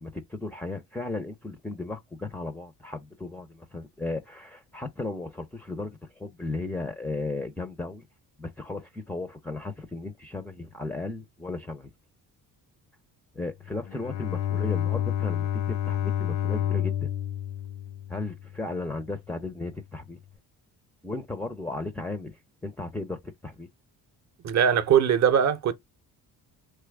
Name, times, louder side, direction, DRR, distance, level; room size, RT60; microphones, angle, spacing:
voice 1, 0.0-8.0 8.4-11.9 13.3-17.1 18.1-20.2 21.0-23.7, left 2 dB, 5° left, 0.4 m, -35 dB
Bowed string instrument, 13.6-18.8, left 10 dB, 70° left, 0.6 m, -30 dB
voice 2, 24.4-25.7, right 8 dB, 40° right, 0.7 m, -21 dB
3.0 x 2.3 x 3.4 m
supercardioid pair, 60°, 44 cm